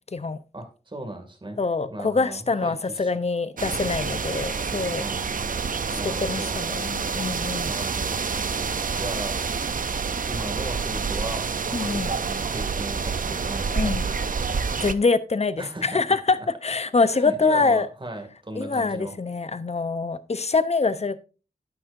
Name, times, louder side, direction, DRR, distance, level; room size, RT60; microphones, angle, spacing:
voice 1, 0.5-1.6 1.9-3.2 5.0-5.4 5.9-6.6 7.6-8.2 9.0-9.4 10.2-14.3 15.6-16.5 17.0-19.1, right 1 dB, 30° right, 5 dB, 2.4 m, -36 dB
voice 2, 1.6-5.0 6.0-7.7 11.7-12.1 13.7-14.0 14.8-17.9 18.6-21.2, left 4 dB, 40° left, 13 dB, 0.8 m, -25 dB
sound 1, 3.6-14.9, right 5 dB, 60° right, 0.6 m, -28 dB
12.0 x 9.8 x 2.7 m, 0.34 s
wide cardioid pair, 90°, 16 cm